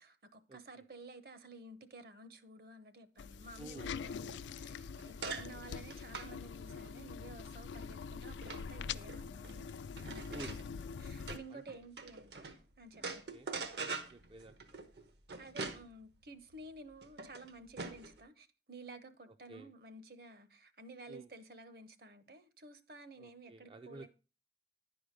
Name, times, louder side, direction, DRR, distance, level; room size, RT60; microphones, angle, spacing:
voice 1, 0.0-9.7 10.0-13.1 15.4-24.1, right 2 dB, 55° right, 0.9 m, -53 dB
sound 1, 3.2-11.4, left 6 dB, 90° left, 0.3 m, -44 dB
voice 2, 3.6-3.9 5.5-5.6 10.3-10.6 11.5-11.6 13.3-13.5 13.9-14.6 19.5-19.7 21.1-21.3 23.2-24.1, right 2 dB, 30° right, 0.3 m, -51 dB
sound 2, 4.6-12.6 12.9-18.2, right 4 dB, 75° right, 1.1 m, -45 dB
10.5 x 4.9 x 5.0 m
head